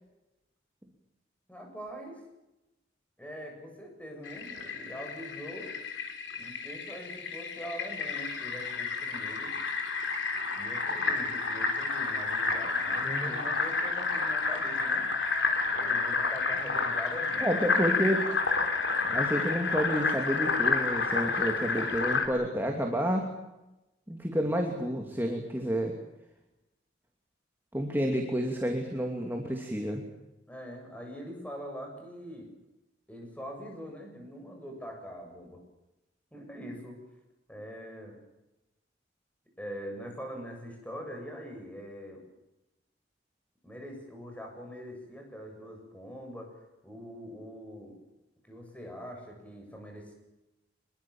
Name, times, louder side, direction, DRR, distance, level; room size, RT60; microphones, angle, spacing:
voice 1, 1.5-2.2 3.2-5.8 6.3-9.5 10.5-15.1 15.7-17.8 30.5-32.5 33.1-35.6 36.3-36.9 37.5-38.2 39.6-42.2 43.6-47.9 48.4-50.1, equal, 10° left, 2 dB, 7.7 m, -43 dB
Fill (with liquid), 4.2-22.3, left 4 dB, 80° left, 3.9 m, -30 dB
voice 2, 13.0-13.4 17.4-18.2 19.0-23.3 24.1-26.0 27.7-30.0, equal, 10° right, 2 dB, 2.6 m, -30 dB
25.5 x 22.0 x 7.3 m, 0.97 s
head